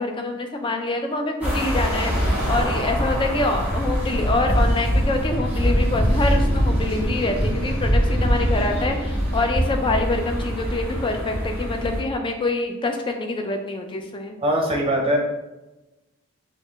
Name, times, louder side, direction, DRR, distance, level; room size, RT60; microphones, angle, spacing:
voice 1, 0.0-14.3, left 2 dB, 20° left, 4 dB, 0.4 m, -25 dB
sound 1, 1.4-12.0, equal, 5° right, 1.2 m, -23 dB
voice 2, 14.4-15.2, equal, 25° right, 0 dB, 0.7 m, -21 dB
4.4 x 2.4 x 3.5 m, 1.0 s
head